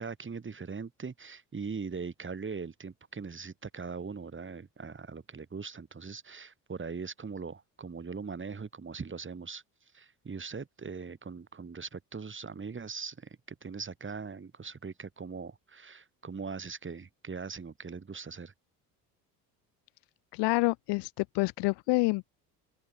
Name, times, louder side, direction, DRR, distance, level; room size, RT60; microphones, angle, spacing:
voice 1, 0.0-9.6 9.9-18.5, right 5 dB, 25° right, 3.1 m, -41 dB
voice 2, 20.3-22.3, left 26 dB, 55° left, 0.7 m, -27 dB
open air
hypercardioid pair, 65°, 48 cm